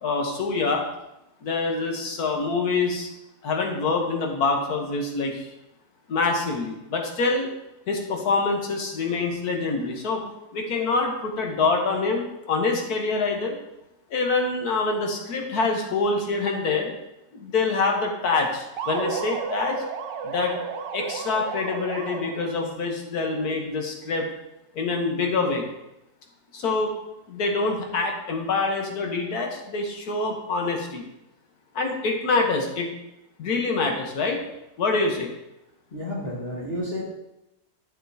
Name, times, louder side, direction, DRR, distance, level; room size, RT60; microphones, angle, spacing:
voice 1, 0.0-0.9 1.4-3.1 3.4-5.5 6.1-7.5 7.9-10.2 10.5-13.6 14.1-16.9 17.3-19.8 20.2-20.6 20.9-24.3 24.7-25.6 26.5-27.0 27.3-31.0 31.7-32.9 33.4-34.4 34.8-35.3, left 3 dB, 65° left, 2 dB, 1.6 m, -25 dB
sound 1, 18.8-22.6, right 6 dB, 90° right, 1.3 m, -32 dB
voice 2, 35.9-37.0, left 1 dB, 35° left, -6 dB, 1.6 m, -31 dB
9.5 x 7.2 x 2.8 m, 0.90 s
omnidirectional pair, 1.8 m